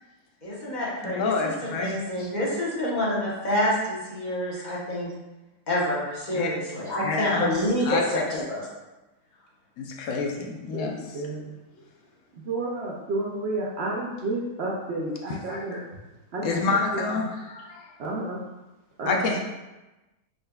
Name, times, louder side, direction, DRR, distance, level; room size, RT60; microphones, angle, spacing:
voice 1, 0.4-1.5 1.8-5.1 5.7-8.6, left 1 dB, 35° left, -6 dB, 0.9 m, -27 dB
voice 2, 1.0-1.9 4.5-4.7 6.3-6.5 7.0-7.5 7.8-8.0 9.8-11.2 15.3-15.8 16.4-17.9 19.0-19.4, left 4 dB, 65° left, 1 dB, 0.9 m, -28 dB
voice 3, 10.7-11.5 12.5-15.8 16.3-17.0 18.0-18.4 19.0-19.3, right 2 dB, 65° right, -3 dB, 0.7 m, -31 dB
3.9 x 3.9 x 2.2 m, 1.1 s
omnidirectional pair, 1.5 m